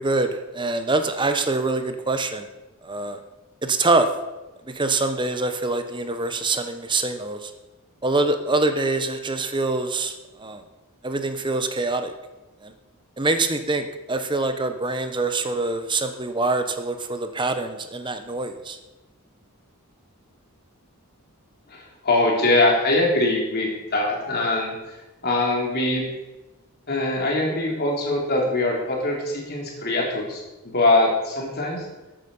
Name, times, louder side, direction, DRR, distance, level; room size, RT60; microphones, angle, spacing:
voice 1, 0.0-2.5 2.8-3.2 3.6-4.1 4.7-7.5 8.0-10.1 10.4-10.6 11.0-12.1 12.6-12.7 13.2-18.8, right 3 dB, 20° right, 8 dB, 0.9 m, -24 dB
voice 2, 21.7-24.7 25.2-26.0 26.9-31.8, left 2 dB, 45° left, -1 dB, 3.3 m, -22 dB
13.5 x 8.8 x 5.5 m, 1.1 s
head